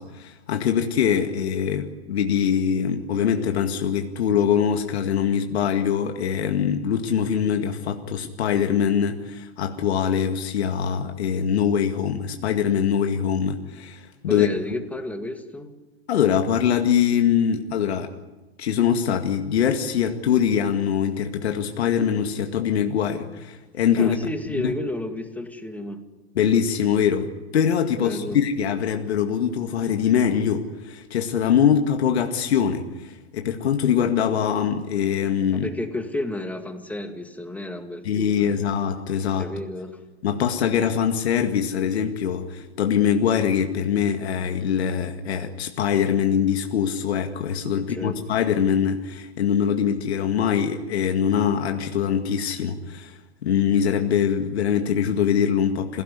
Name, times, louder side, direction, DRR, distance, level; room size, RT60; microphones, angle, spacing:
voice 1, 0.0-14.5 16.1-18.1 18.6-24.2 24.5-24.7 26.4-35.7 38.0-39.5 40.2-56.0, left 8 dB, 75° left, 5 dB, 2.1 m, -23 dB
voice 2, 14.3-15.8 24.0-26.0 28.0-28.4 35.5-38.6 39.4-40.0 47.7-48.2, left 1 dB, 5° left, 7 dB, 2.1 m, -32 dB
27.0 x 17.0 x 9.8 m, 1.1 s
hypercardioid pair, 115°, 32 cm